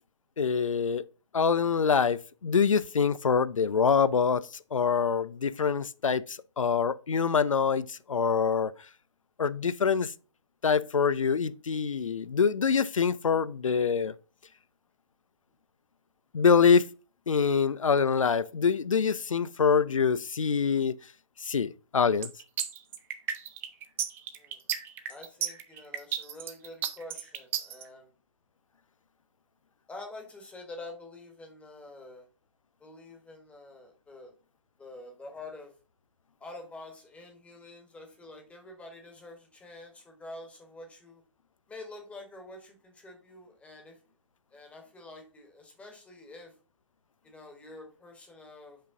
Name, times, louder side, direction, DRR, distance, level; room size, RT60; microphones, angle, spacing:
voice 1, 0.4-1.0 1.3-8.7 9.4-10.1 10.6-14.1 16.3-16.9 17.3-21.0 21.4-22.3, left 6 dB, 85° left, 0.5 m, -25 dB
sound 1, 22.2-27.8, right 10 dB, 15° right, 0.4 m, -33 dB
voice 2, 25.1-28.1 29.9-32.3 32.8-34.3 34.8-35.7 36.4-41.2 41.7-44.0 44.5-46.5 47.2-48.8, left 2 dB, 10° left, 1.4 m, -47 dB
5.5 x 5.2 x 3.7 m
figure-of-eight pair, 140°, 16 cm